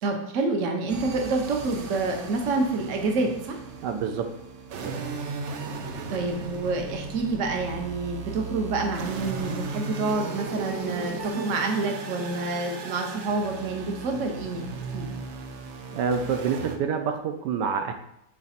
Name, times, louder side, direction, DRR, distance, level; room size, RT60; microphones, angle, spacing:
voice 1, 0.0-3.6 6.1-15.2, right 3 dB, 55° right, 3 dB, 1.0 m, -28 dB
sound 1, 0.9-16.8, right 4 dB, 90° right, 0.6 m, -36 dB
voice 2, 3.8-4.3 4.7-5.0 15.9-17.9, right 6 dB, 75° right, 6 dB, 1.1 m, -27 dB
5.8 x 3.9 x 4.2 m, 0.78 s
omnidirectional pair, 2.0 m